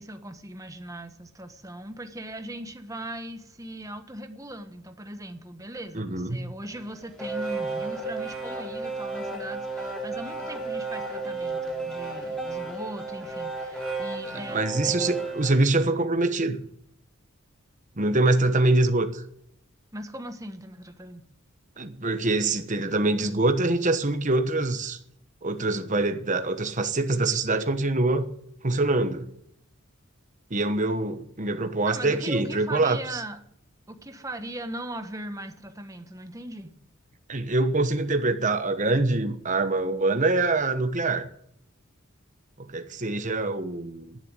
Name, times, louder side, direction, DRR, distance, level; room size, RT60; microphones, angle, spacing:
voice 1, 0.0-15.0 19.9-21.3 31.8-33.4 33.9-36.8, right 1 dB, 15° right, 1.2 m, -39 dB
voice 2, 5.9-6.5 14.5-16.7 18.0-19.2 21.8-25.0 25.4-28.3 28.6-29.3 30.5-33.2 37.3-41.3 42.6-44.2, right 2 dB, 35° right, 1.2 m, -24 dB
sound 1, 6.7-15.5, right 3 dB, 5° left, 3.7 m, -33 dB
12.0 x 10.5 x 9.0 m
head